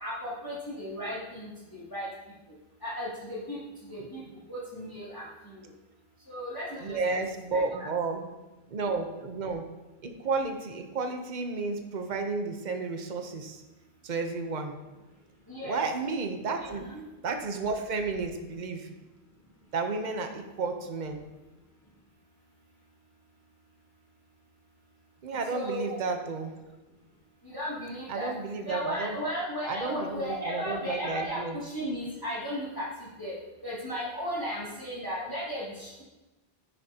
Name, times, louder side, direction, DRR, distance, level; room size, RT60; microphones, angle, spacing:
voice 1, 0.0-2.1 2.8-3.6 3.9-4.2 4.5-5.7 6.3-7.0 7.5-7.9 15.5-15.8 16.6-17.0 25.5-26.0 27.4-28.3 28.6-33.3 33.6-36.0, equal, 20° left, -9 dB, 2.6 m, -35 dB
voice 2, 6.8-8.2 8.7-9.7 10.0-13.6 14.0-14.8 15.6-16.9 17.2-18.9 19.7-21.2 25.2-26.5 28.1-29.2 29.7-31.6, right 4 dB, 45° right, 5 dB, 1.0 m, -32 dB
10.5 x 9.6 x 2.9 m, 1.1 s
omnidirectional pair, 1.1 m